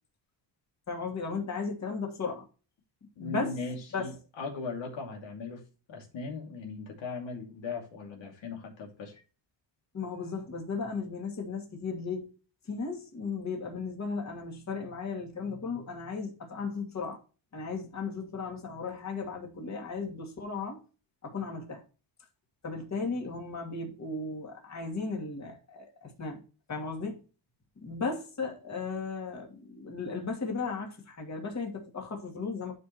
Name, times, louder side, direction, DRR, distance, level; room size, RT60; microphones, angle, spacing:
voice 1, 0.9-2.5 3.2-3.6 3.9-4.1 9.9-12.3 12.6-17.2 17.5-20.8 21.2-21.8 22.6-26.4 26.7-27.2 27.8-32.7, left 4 dB, 35° left, 2.6 m, -35 dB
voice 2, 3.2-5.6 5.9-9.1, left 4 dB, 75° left, 2.6 m, -38 dB
11.5 x 4.8 x 3.0 m
cardioid pair, 125°, 45 cm